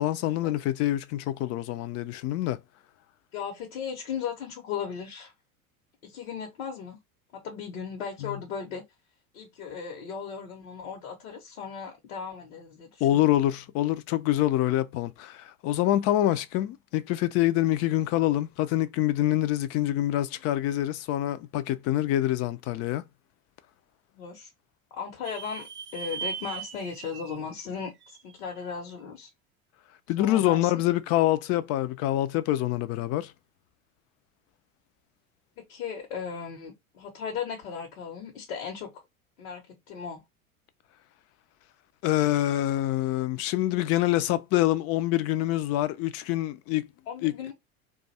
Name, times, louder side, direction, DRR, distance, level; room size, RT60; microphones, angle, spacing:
voice 1, 0.0-2.6 8.2-8.4 13.0-23.0 30.1-33.3 42.0-46.9 47.2-47.3, left 14 dB, 35° left, 0.4 m, -26 dB
voice 2, 3.3-5.3 6.0-7.0 7.3-8.8 9.3-13.3 24.1-24.5 24.9-25.7 25.9-27.9 28.2-29.3 30.2-30.8 35.6-38.9 39.4-40.2 47.1-47.5, left 6 dB, 65° left, 1.0 m, -37 dB
sound 1, 25.2-28.8, right 7 dB, 30° right, 0.5 m, -39 dB
2.5 x 2.4 x 4.1 m
figure-of-eight pair, 75°, 42 cm